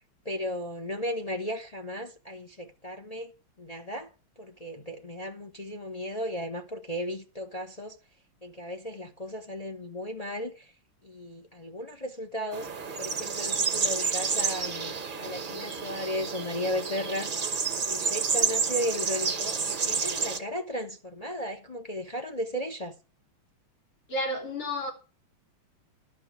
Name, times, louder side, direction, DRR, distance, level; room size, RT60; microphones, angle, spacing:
voice 1, 0.2-3.3 3.6-4.1 4.4-8.0 8.4-10.7 11.0-12.7 13.0-17.3 17.7-19.6 19.8-23.0, equal, 40° left, 0.5 m, -35 dB
sound 1, 12.5-20.4, right 5 dB, 40° right, 0.7 m, -30 dB
voice 2, 24.1-24.9, left 1 dB, 80° left, 4.4 m, -31 dB
12.5 x 5.8 x 8.1 m
omnidirectional pair, 2.3 m